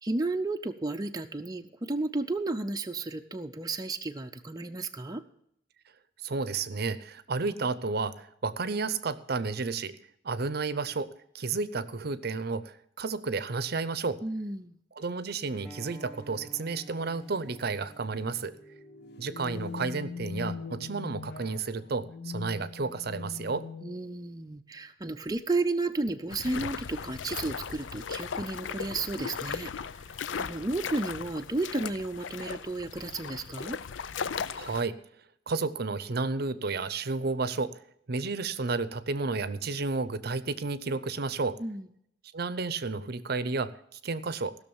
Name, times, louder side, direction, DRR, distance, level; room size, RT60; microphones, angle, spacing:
voice 1, 0.0-5.2 14.2-14.8 23.8-29.7 30.4-33.8 41.6-41.9, right 2 dB, 20° right, 5 dB, 0.5 m, -32 dB
voice 2, 6.2-10.0 10.2-14.2 15.0-18.5 19.2-23.7 34.5-35.0 35.5-37.8 38.1-41.6 42.3-44.6, right 4 dB, 55° right, 15 dB, 0.7 m, -32 dB
sound 1, 15.1-15.2 16.2-16.5 16.8-16.9 17.3-17.6 18.6-24.3, left 5 dB, 60° left, 0.9 m, -41 dB
Acoustic guitar, 15.6-20.8, right 3 dB, ahead, 1.5 m, -52 dB
sound 2, 26.3-34.8, left 6 dB, 90° left, 0.5 m, -37 dB
16.0 x 6.4 x 7.1 m, 0.72 s
head